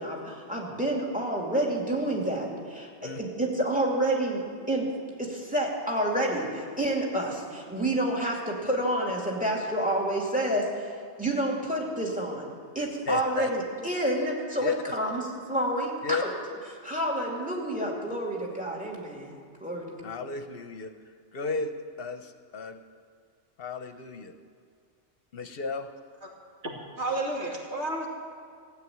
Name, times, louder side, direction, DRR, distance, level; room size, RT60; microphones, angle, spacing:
voice 1, 0.0-2.9 3.2-4.9 5.2-10.9 11.2-12.5 12.7-15.2 15.5-16.3 16.8-19.9, right 1 dB, 5° right, -2 dB, 2.6 m, -29 dB
voice 2, 12.8-13.5 14.6-14.8 16.0-16.2 20.0-20.9 21.3-21.7 22.0-22.8 23.6-24.3 25.3-25.9, left 4 dB, 60° left, 8 dB, 0.9 m, -33 dB
voice 3, 27.0-28.1, right 2 dB, 90° right, -3 dB, 2.8 m, -31 dB
15.5 x 8.7 x 9.2 m, 2.2 s
omnidirectional pair, 1.1 m